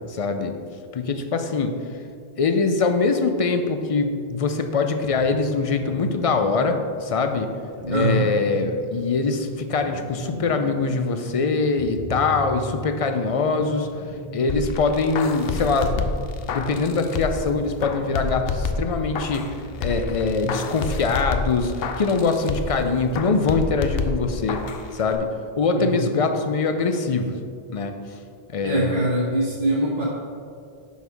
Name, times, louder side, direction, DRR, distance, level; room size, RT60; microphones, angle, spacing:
voice 1, 0.1-0.6 0.9-1.8 2.4-7.5 7.9-13.9 14.3-16.1 16.5-24.6 24.9-25.3 25.6-27.3 27.7-27.9 28.5-29.0, left 4 dB, 50° left, 7 dB, 0.4 m, -23 dB
sound 1, 5.0-21.2, right 1 dB, 65° right, 1.8 m, -39 dB
voice 2, 7.8-8.2 25.7-26.1 28.6-30.0, right 1 dB, 50° right, -6 dB, 1.1 m, -23 dB
sound 2, 14.5-17.5 17.8-19.5 19.8-22.8 23.1-24.8 25.1-25.2, left 4 dB, 75° left, 0.8 m, -28 dB
6.2 x 5.5 x 4.7 m, 2.3 s
omnidirectional pair, 1.0 m